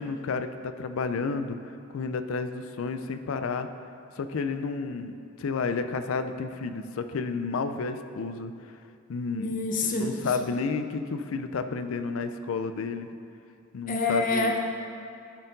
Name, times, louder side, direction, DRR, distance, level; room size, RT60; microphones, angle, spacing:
voice 1, 0.0-3.7 4.2-8.7 9.1-9.6 9.8-13.1 13.7-14.5, left 4 dB, 75° left, 9 dB, 0.4 m, -31 dB
voice 2, 9.3-10.1 13.9-14.6, left 3 dB, 40° left, 2 dB, 0.7 m, -26 dB
12.0 x 4.4 x 3.9 m, 2.5 s
head